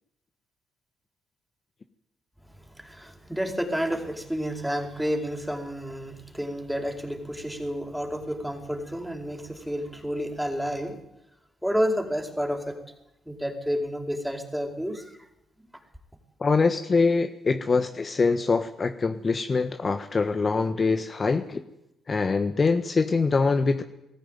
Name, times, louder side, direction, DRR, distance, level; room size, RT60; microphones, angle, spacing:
voice 1, 2.8-11.0 11.6-12.7 13.3-15.1, equal, ahead, 3 dB, 5.0 m, -30 dB
voice 2, 16.4-21.6 22.1-23.8, left 4 dB, 40° left, 7 dB, 1.4 m, -24 dB
20.5 x 14.5 x 9.3 m, 0.90 s
hypercardioid pair, 45°, 0 cm